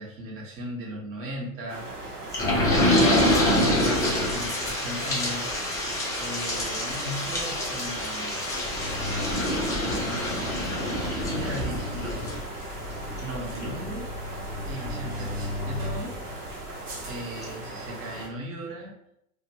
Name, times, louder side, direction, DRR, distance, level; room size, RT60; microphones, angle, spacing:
voice 1, 0.0-2.0 2.4-5.8 6.1-8.5 9.5-12.4 13.2-14.1 14.6-16.2 17.0-18.9, right 1 dB, 30° right, -2 dB, 0.9 m, -38 dB
sound 1, 1.7-18.3, right 2 dB, 90° right, 0.8 m, -39 dB
sound 2, 2.3-16.6 17.1-17.2 17.4-17.5, left 1 dB, 10° left, 0.3 m, -27 dB
2.6 x 2.2 x 2.7 m, 0.76 s
hypercardioid pair, 95°, 45 cm